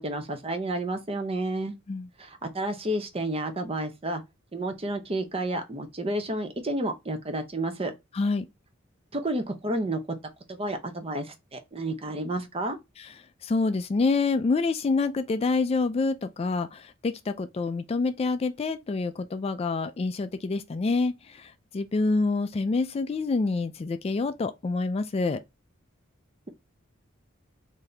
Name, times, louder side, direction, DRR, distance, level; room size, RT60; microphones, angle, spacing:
voice 1, 0.0-1.7 2.2-4.2 4.5-7.9 9.1-10.0 10.5-12.8, right 1 dB, 30° right, 0.7 m, -30 dB
voice 2, 8.1-8.5 13.0-13.1 13.4-25.4, left 3 dB, 30° left, 0.3 m, -27 dB
3.9 x 2.7 x 3.3 m
head